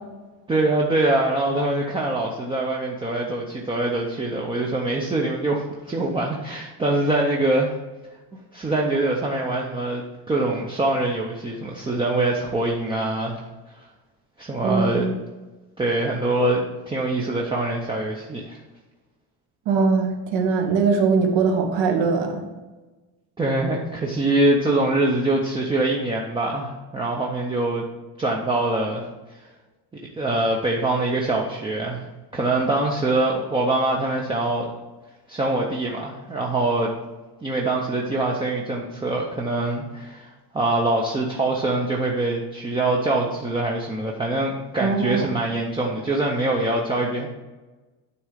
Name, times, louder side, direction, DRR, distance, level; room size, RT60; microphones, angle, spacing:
voice 1, 0.5-7.7 8.5-10.0 10.3-13.4 14.4-15.1 15.8-18.6 23.4-27.8 28.2-29.0 30.2-32.0 32.3-34.7 35.3-36.9 37.4-47.3, right 2 dB, 10° right, -2 dB, 0.5 m, -24 dB
voice 2, 14.6-15.2 19.7-22.4 44.8-45.3, right 4 dB, 80° right, 3 dB, 1.5 m, -21 dB
9.6 x 3.6 x 5.0 m, 1.2 s
cardioid pair, 170°, 43 cm